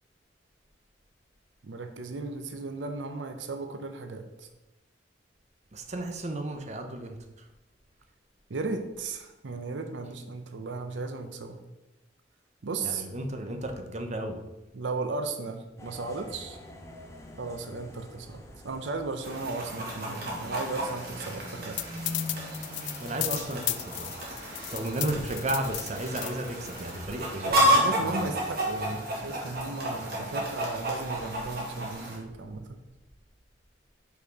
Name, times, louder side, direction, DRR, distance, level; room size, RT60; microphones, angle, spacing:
voice 1, 1.6-4.5 8.5-11.6 12.6-13.1 14.7-16.6 17.4-21.8 27.3-32.8, right 3 dB, 85° right, 6 dB, 0.6 m, -35 dB
voice 2, 5.7-7.2 12.8-14.4 23.0-24.1 24.7-28.3, right 1 dB, 40° right, 5 dB, 0.8 m, -33 dB
sound 1, 15.8-30.7, left 1 dB, 15° left, 0.8 m, -46 dB
Chicken rooster, 19.2-32.2, right 1 dB, 55° right, 1.8 m, -31 dB
sound 2, 21.8-27.1, left 17 dB, 75° left, 0.3 m, -34 dB
5.5 x 4.2 x 5.2 m, 1.0 s
head